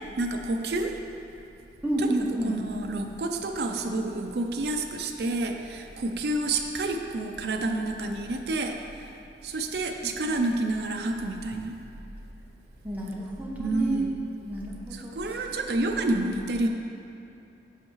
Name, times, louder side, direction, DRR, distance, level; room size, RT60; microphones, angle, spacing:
voice 1, 0.2-0.9 2.1-8.8 9.4-11.7 13.6-14.1 14.9-16.7, right 2 dB, 60° right, 3 dB, 0.5 m, -29 dB
voice 2, 1.8-2.6 10.0-10.2 12.8-14.1 14.5-15.5, right 1 dB, 10° right, -4 dB, 0.8 m, -30 dB
7.9 x 5.6 x 3.1 m, 2.6 s
head